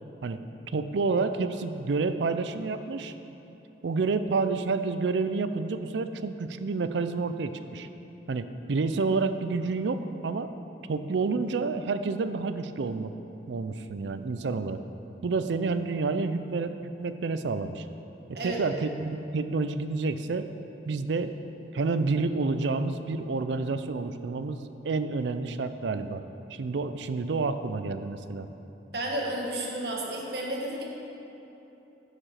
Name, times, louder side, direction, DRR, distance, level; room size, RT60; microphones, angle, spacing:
voice 1, 0.7-3.1 3.8-7.9 8.3-10.5 10.9-13.1 13.5-14.8 15.2-17.8 18.4-20.5 20.9-21.4 21.7-26.2 26.5-28.5, right 4 dB, 80° right, 10 dB, 0.4 m, -29 dB
voice 2, 28.9-30.8, right 1 dB, 60° right, -2 dB, 1.4 m, -32 dB
11.0 x 5.0 x 5.7 m, 3.0 s
head